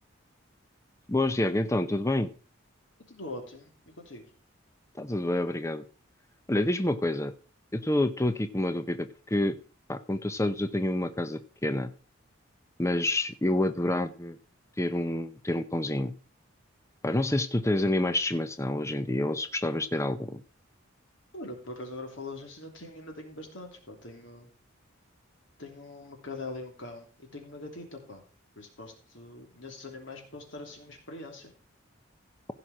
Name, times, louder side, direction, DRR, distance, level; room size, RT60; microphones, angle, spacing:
voice 1, 1.1-2.3 5.0-5.8 6.5-7.3 7.7-9.6 9.9-11.9 12.8-14.4 14.8-16.1 17.0-20.4, left 1 dB, 15° left, 11 dB, 0.6 m, -28 dB
voice 2, 3.1-3.7 4.0-4.3 21.3-24.5 25.6-28.2 28.6-31.5, left 2 dB, 65° left, 3 dB, 3.1 m, -42 dB
16.0 x 5.9 x 4.8 m, 0.38 s
head